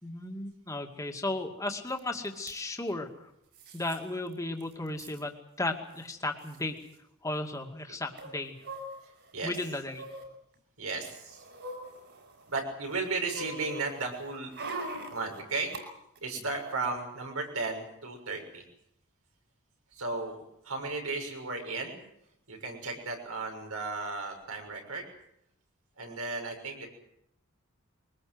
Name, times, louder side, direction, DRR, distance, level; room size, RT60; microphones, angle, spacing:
voice 1, 0.0-3.3 3.7-6.8 7.2-8.6 9.4-10.1, left 2 dB, 15° left, 3 dB, 2.2 m, -35 dB
sound 1, 2.0-2.1 2.3-2.6 3.5-4.0 4.3-4.4 4.6-5.2 6.1-6.2 6.4-6.6 8.2-9.3 9.9-10.3 10.9-12.5 12.9-15.8 16.2-16.3, right 1 dB, 55° right, 5.9 m, -42 dB
voice 2, 9.0-9.6 10.8-11.4 12.5-14.5 15.1-15.7 16.2-18.6 19.9-20.4 20.6-22.0 22.5-25.1 26.0-26.9, right 3 dB, 85° right, 2 dB, 6.6 m, -35 dB
23.0 x 19.5 x 7.9 m, 0.79 s
head